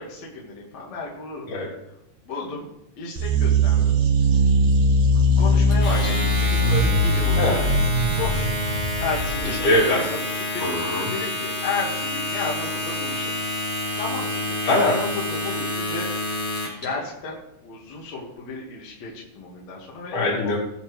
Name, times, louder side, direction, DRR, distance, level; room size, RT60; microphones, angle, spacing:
voice 1, 0.0-1.5 2.3-2.7 3.0-4.0 5.1-7.6 8.2-8.7 9.0-10.6 11.1-13.4 14.0-16.1 16.8-20.2, left 4 dB, 60° left, -3 dB, 2.8 m, -33 dB
sound 1, 3.2-9.7, right 1 dB, 65° right, 2.5 m, -20 dB
Domestic sounds home sounds, 5.7-16.8, left 1 dB, 20° left, 4.3 m, -28 dB
voice 2, 9.4-10.1 10.6-11.1 14.6-15.1 20.1-20.6, left 1 dB, 80° left, -5 dB, 5.0 m, -22 dB
20.0 x 7.1 x 3.1 m, 0.84 s
omnidirectional pair, 3.6 m